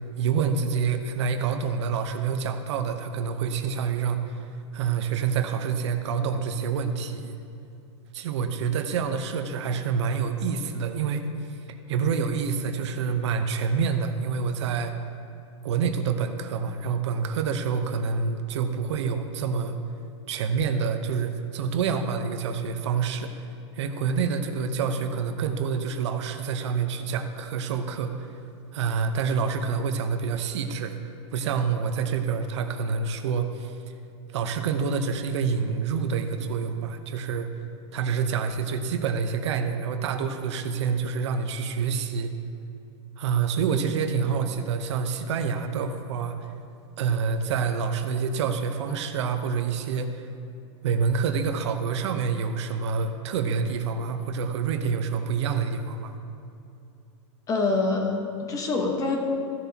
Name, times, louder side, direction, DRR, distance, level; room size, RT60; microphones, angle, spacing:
voice 1, 0.2-7.4 8.1-11.6 11.9-14.9 15.6-19.8 20.3-23.5 23.7-28.3 28.7-30.9 31.3-33.8 34.3-37.5 37.9-42.3 43.2-46.4 47.0-50.3 50.8-56.1, right 6 dB, 70° right, 7 dB, 0.8 m, -27 dB
voice 2, 57.5-59.2, left 3 dB, 20° left, 1 dB, 1.3 m, -25 dB
15.0 x 7.0 x 2.9 m, 2.7 s
hypercardioid pair, 140°, 15 cm